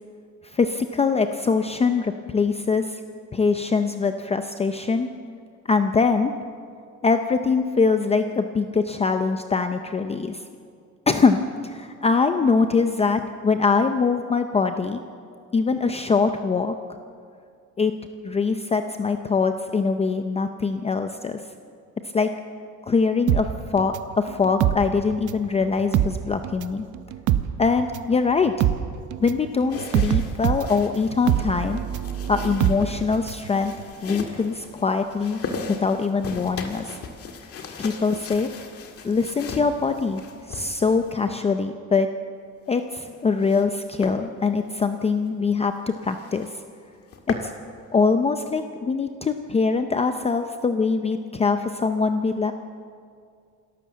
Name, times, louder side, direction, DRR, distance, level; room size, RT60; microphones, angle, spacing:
voice 1, 0.5-3.0 3.3-5.1 5.7-6.3 7.0-10.4 11.1-15.0 15.5-16.7 17.8-17.9 18.2-21.4 22.1-22.3 22.9-26.9 27.6-28.7 29.2-31.8 32.3-33.7 34.0-35.4 35.8-37.0 37.8-38.5 39.0-40.2 40.5-42.1 42.7-46.5 47.3-47.5 47.9-52.5, left 4 dB, 20° left, 7 dB, 0.5 m, -23 dB
sound 1, 23.3-25.5 25.8-33.5 33.8-33.9, right 11 dB, 65° right, 0.8 m, -24 dB
sound 2, 29.7-41.4 42.7-43.7 44.0-44.2 44.7-44.9 45.3-45.4 45.6-45.7 46.0-46.5 46.9-47.5, left 5 dB, 45° left, 1.8 m, -38 dB
27.5 x 13.0 x 7.4 m, 2.3 s
cardioid pair, 180°, 32 cm